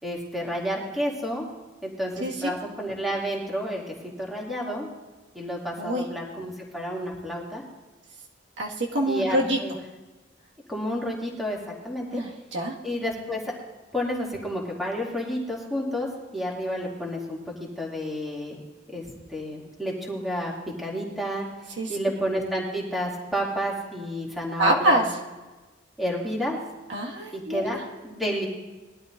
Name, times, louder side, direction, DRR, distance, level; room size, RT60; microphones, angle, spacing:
voice 1, 0.0-1.5 1.8-3.8 4.2-4.9 5.3-7.6 9.0-9.8 10.7-11.6 11.8-12.2 12.8-13.4 13.9-16.1 16.3-17.4 17.8-18.6 18.9-19.0 19.3-20.5 20.8-21.5 21.9-25.0 26.0-26.6 27.3-28.5, equal, ahead, -3 dB, 2.6 m, -30 dB
voice 2, 2.2-2.5 5.8-6.0 8.6-9.6 12.1-12.7 21.8-22.0 24.6-25.0 26.9-27.8, right 1 dB, 75° right, -1 dB, 1.9 m, -25 dB
21.0 x 12.5 x 2.6 m, 1.2 s
head